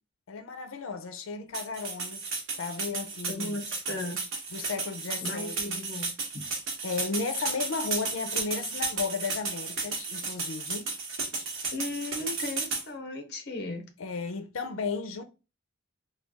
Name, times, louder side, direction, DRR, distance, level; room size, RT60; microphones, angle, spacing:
voice 1, 0.3-2.3 2.6-3.6 4.5-5.9 6.8-10.9 14.0-15.2, left 4 dB, 85° left, 0.5 m, -34 dB
sound 1, 1.5-12.8, right 4 dB, 80° right, 1.1 m, -33 dB
voice 2, 3.3-4.2 5.2-6.1 6.3-6.4 11.7-13.8, left 2 dB, 50° left, 0.8 m, -36 dB
3.1 x 2.3 x 3.5 m
head